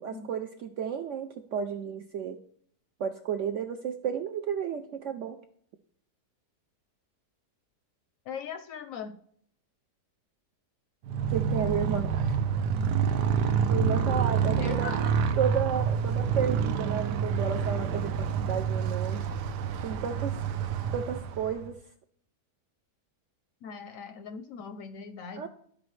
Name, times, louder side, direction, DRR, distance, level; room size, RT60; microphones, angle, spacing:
voice 1, 0.0-2.4 3.0-5.4 11.3-12.4 13.7-14.9 15.4-19.2 19.8-20.3 20.9-21.7 25.4-25.5, right 8 dB, 70° right, 7 dB, 0.7 m, -32 dB
voice 2, 8.3-9.2 14.4-15.2 23.6-25.5, left 6 dB, 70° left, 9 dB, 0.8 m, -40 dB
Motorcycle, 11.0-21.7, right 6 dB, 90° right, 1.2 m, -28 dB
13.0 x 5.0 x 3.2 m, 0.64 s
omnidirectional pair, 1.8 m